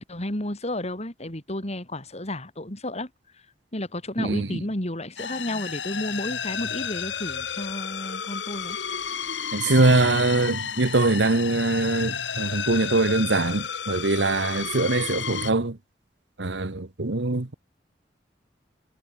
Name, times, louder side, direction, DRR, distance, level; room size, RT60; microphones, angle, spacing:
voice 1, 0.0-3.1 3.7-8.8, left 1 dB, 40° left, 4.5 m, -32 dB
voice 2, 4.2-4.6 9.5-15.8 16.4-17.5, right 2 dB, 80° right, 1.4 m, -23 dB
sound 1, 5.2-15.5, left 7 dB, 85° left, 2.3 m, -32 dB
head